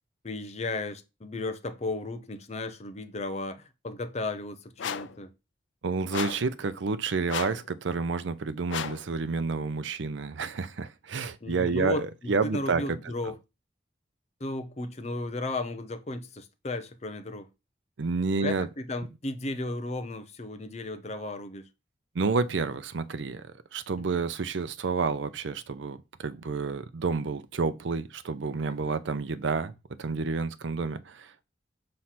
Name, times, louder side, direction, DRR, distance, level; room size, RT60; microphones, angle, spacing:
voice 1, 0.2-5.3 11.4-13.4 14.4-17.5 18.4-21.7 28.8-29.0, left 2 dB, 35° left, 0.7 m, -35 dB
sound 1, 4.8-5.2 6.1-6.5 7.3-7.7 8.7-9.1, left 8 dB, 80° left, 0.5 m, -34 dB
voice 2, 5.8-12.8 18.0-18.7 22.1-23.4 23.7-29.7 30.0-31.4, right 4 dB, 75° right, 0.5 m, -29 dB
5.7 x 3.2 x 5.8 m
head